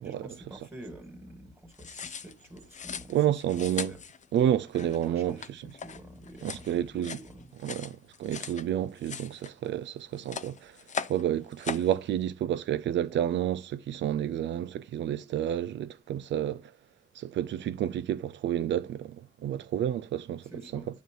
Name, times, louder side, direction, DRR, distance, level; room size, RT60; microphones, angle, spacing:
voice 1, 0.0-4.0 5.1-7.5 20.4-20.9, right 1 dB, 10° right, 2.4 m, -48 dB
sound 1, 1.7-8.7 9.0-9.9 10.1-11.2 11.5-11.9, left 6 dB, 35° left, 0.7 m, -40 dB
voice 2, 3.1-3.9 4.3-5.6 6.4-7.2 7.6-10.7 11.1-16.6 17.2-20.4 20.7-20.8, right 11 dB, 65° right, 0.5 m, -30 dB
9.2 x 3.1 x 6.4 m
cardioid pair, 90°, 20 cm